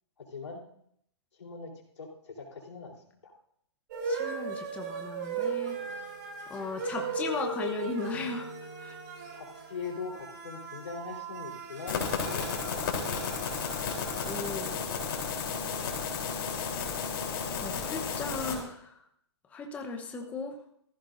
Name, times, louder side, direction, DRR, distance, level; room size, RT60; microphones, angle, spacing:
voice 1, 0.2-0.6 1.4-2.9 3.2-3.3 9.3-13.3, left 4 dB, 80° left, -2 dB, 3.9 m, -41 dB
sound 1, 3.9-14.3, right 4 dB, 45° right, 3.6 m, -38 dB
voice 2, 4.0-5.8 6.5-8.5 8.8-9.0 14.2-14.8 16.2-17.0 17.6-18.9 19.5-20.5, left 3 dB, 10° left, 2 dB, 1.0 m, -37 dB
sound 2, 11.9-18.5, left 5 dB, 50° left, 3.6 m, -33 dB
16.5 x 15.0 x 2.6 m, 0.70 s
hypercardioid pair, 150°, 14 cm